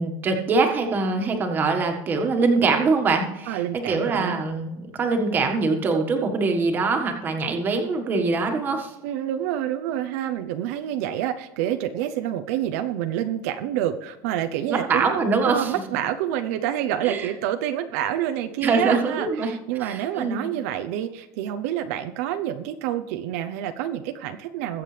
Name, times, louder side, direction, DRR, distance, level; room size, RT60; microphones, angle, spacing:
voice 1, 0.0-8.9 14.7-15.7 17.0-17.3 18.6-19.5 19.8-20.4, right 4 dB, 25° right, 4 dB, 1.6 m, -23 dB
voice 2, 3.5-4.4 9.0-15.2 15.4-24.8, right 11 dB, 75° right, 7 dB, 0.8 m, -28 dB
21.5 x 7.5 x 3.4 m, 0.96 s
cardioid pair, 170°, 8 cm